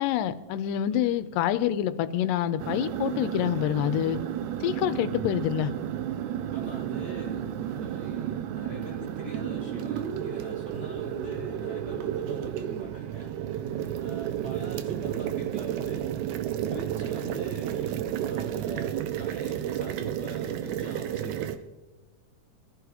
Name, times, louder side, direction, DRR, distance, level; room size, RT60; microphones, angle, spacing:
voice 1, 0.0-4.2 4.6-5.7, left 11 dB, 85° left, 13 dB, 2.2 m, -27 dB
sound 1, 2.6-21.6, right 10 dB, 80° right, 1.9 m, -32 dB
voice 2, 6.5-13.3 14.0-16.1 16.7-21.6, right 1 dB, 55° right, -3 dB, 1.1 m, -42 dB
Boom, 13.2-16.4, right 2 dB, 25° right, 4.4 m, -54 dB
21.5 x 14.5 x 2.9 m, 1.2 s
omnidirectional pair, 3.9 m